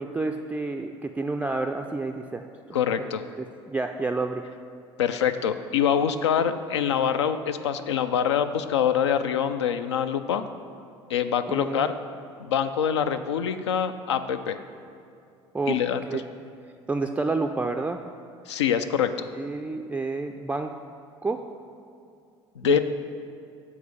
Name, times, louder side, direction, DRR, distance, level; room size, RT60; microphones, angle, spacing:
voice 1, 0.0-2.5 3.4-4.4 11.5-11.9 15.5-15.8 16.1-16.2 16.9-18.0 19.4-20.7 21.2-21.4 22.6-22.8, right 3 dB, 10° right, 5 dB, 0.3 m, -29 dB
voice 2, 2.7-3.2 5.0-10.5 11.1-11.9 12.4-14.6 15.7-16.2 18.5-19.3 22.6-22.8, left 8 dB, 80° left, 10 dB, 0.4 m, -25 dB
7.3 x 4.0 x 6.7 m, 2.6 s
figure-of-eight pair, 65°, 14 cm